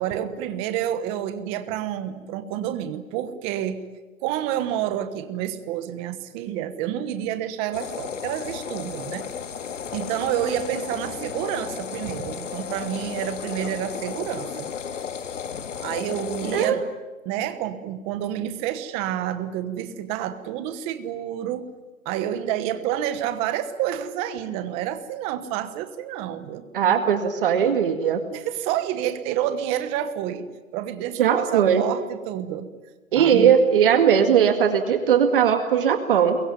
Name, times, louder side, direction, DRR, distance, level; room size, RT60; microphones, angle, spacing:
voice 1, 0.0-3.8 4.2-9.3 9.9-14.7 15.8-16.9 17.2-21.7 22.0-26.6 28.3-32.7 33.1-33.5, right 11 dB, 15° right, 11 dB, 1.1 m, -29 dB
sound 1, 7.7-16.7, left 7 dB, 65° left, 2.1 m, -34 dB
voice 2, 26.7-28.2 31.2-31.8 33.1-36.4, right 8 dB, 40° right, 7 dB, 2.1 m, -19 dB
28.0 x 22.5 x 9.3 m, 1.3 s
hypercardioid pair, 160°, 40 cm